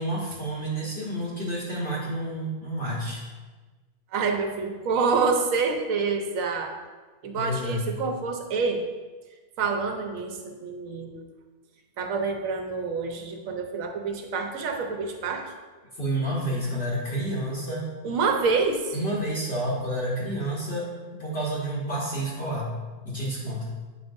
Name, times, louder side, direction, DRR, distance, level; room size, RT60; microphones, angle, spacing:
voice 1, 0.0-3.3 7.3-7.8 16.0-17.9 18.9-20.9 21.2-22.7 23.0-23.7, right 1 dB, 45° left, -8 dB, 1.4 m, -29 dB
voice 2, 4.1-6.7 7.2-8.9 9.6-11.3 12.0-15.5 18.0-18.9, right 4 dB, 65° right, 4 dB, 1.1 m, -27 dB
8.4 x 5.3 x 2.6 m, 1.3 s
omnidirectional pair, 1.6 m